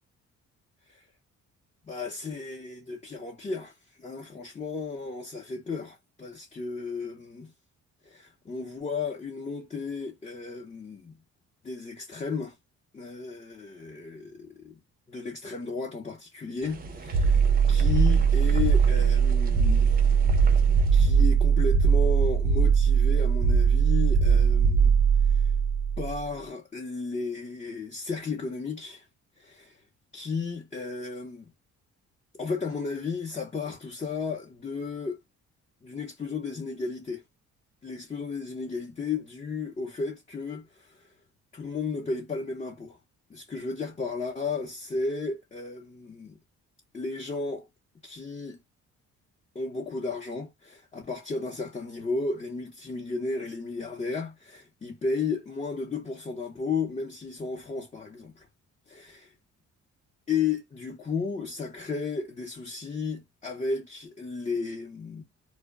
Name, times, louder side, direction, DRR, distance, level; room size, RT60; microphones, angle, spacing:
voice 1, 1.9-7.5 8.0-11.2 11.6-12.5 12.9-14.8 15.1-20.0 20.9-24.9 25.2-25.5 26.0-29.1 29.4-29.8 30.1-31.5 32.3-35.2 35.8-37.2 37.8-41.1 41.5-43.0 43.3-46.4 46.9-47.7 48.0-48.6 49.5-58.5 58.9-59.3 60.3-65.2, left 4 dB, 25° left, 0.6 m, -34 dB
sound 1, 16.6-21.2, right 3 dB, 30° right, 0.5 m, -41 dB
sound 2, 17.1-26.2, right 6 dB, 85° right, 0.7 m, -21 dB
2.1 x 2.1 x 3.4 m
cardioid pair, 90°, 30 cm